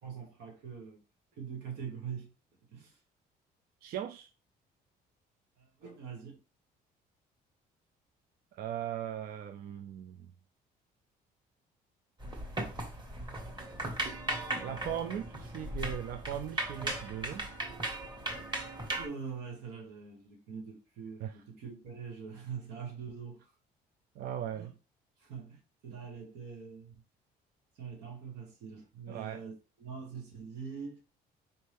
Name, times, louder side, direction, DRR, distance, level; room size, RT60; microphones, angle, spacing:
voice 1, 0.0-1.0 1.3-2.3 2.6-3.0 5.6-6.4 18.9-23.5 24.5-24.7 25.2-26.9 27.7-31.0, right 6 dB, 85° right, 1.3 m, -44 dB
voice 2, 3.8-4.3 8.5-10.3 14.6-17.5 17.9-18.0 21.2-21.4 24.2-24.7 29.1-29.4, right 10 dB, 60° right, 0.4 m, -39 dB
sound 1, 12.2-19.1, right 1 dB, 25° right, 1.4 m, -37 dB
4.4 x 2.7 x 3.4 m
cardioid pair, 110°, 17 cm